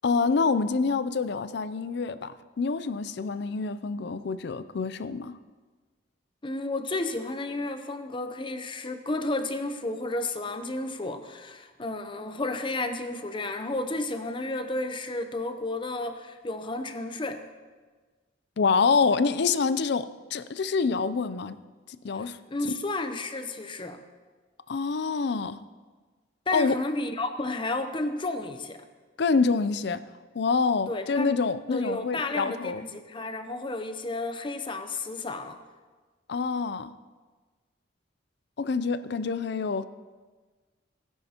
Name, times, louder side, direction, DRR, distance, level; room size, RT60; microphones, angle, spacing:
voice 1, 0.0-5.3 18.6-21.6 21.9-22.4 24.7-25.6 26.5-26.8 29.2-30.0 30.3-32.8 36.3-36.9 38.6-39.8, left 4 dB, 60° left, 14 dB, 0.4 m, -26 dB
voice 2, 6.4-17.4 22.5-24.0 26.5-28.8 30.9-31.3 31.7-35.6, left 2 dB, 25° left, 8 dB, 0.7 m, -32 dB
18.0 x 10.5 x 2.9 m, 1.4 s
head